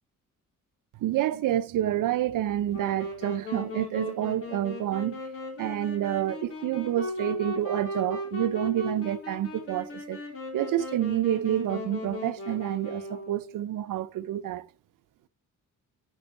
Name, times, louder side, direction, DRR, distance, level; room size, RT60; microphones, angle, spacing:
voice 1, 1.0-5.2 5.6-10.2 10.5-14.6, right 12 dB, 85° right, 0.9 m, -28 dB
Wind instrument woodwind instrument, 2.7-13.6, left 2 dB, 45° left, 4.1 m, -37 dB
10.5 x 8.3 x 4.3 m
cardioid pair, 150°, 31 cm